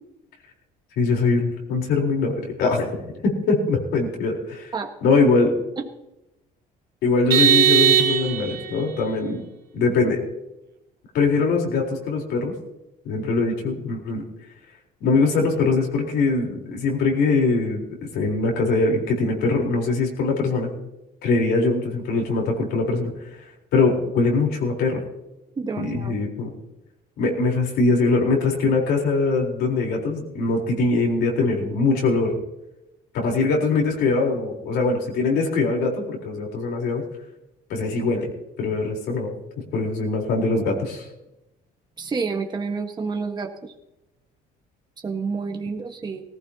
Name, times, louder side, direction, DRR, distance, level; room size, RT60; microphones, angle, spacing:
voice 1, 1.0-2.9 3.2-4.7 5.0-5.5 7.0-9.4 9.7-10.2 11.1-12.5 13.0-14.2 15.0-17.8 18.1-20.7 21.2-23.1 23.7-25.0 25.8-26.5 27.2-32.4 33.1-37.0 37.7-38.3 38.6-39.3 39.7-41.1, left 3 dB, 80° left, 0 dB, 4.0 m, -22 dB
Vehicle horn car horn honking, 7.3-8.7, right 9 dB, 65° right, 1.7 m, -18 dB
voice 2, 25.6-26.2 42.0-43.7 45.0-46.2, right 4 dB, 25° right, 3 dB, 1.5 m, -29 dB
19.0 x 15.0 x 2.9 m, 0.91 s
cardioid pair, 110°, 17 cm